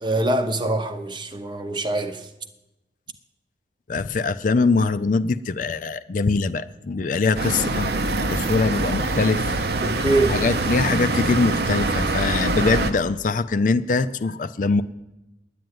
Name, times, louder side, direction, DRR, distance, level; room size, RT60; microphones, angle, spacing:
voice 1, 0.0-2.3 9.8-10.4, right 2 dB, 25° right, 0.8 m, -24 dB
voice 2, 3.9-7.9 8.3-9.6 10.3-14.8, left 4 dB, 45° left, 0.4 m, -22 dB
sound 1, 7.4-12.9, right 2 dB, 60° right, 0.8 m, -24 dB
10.0 x 9.1 x 9.5 m
head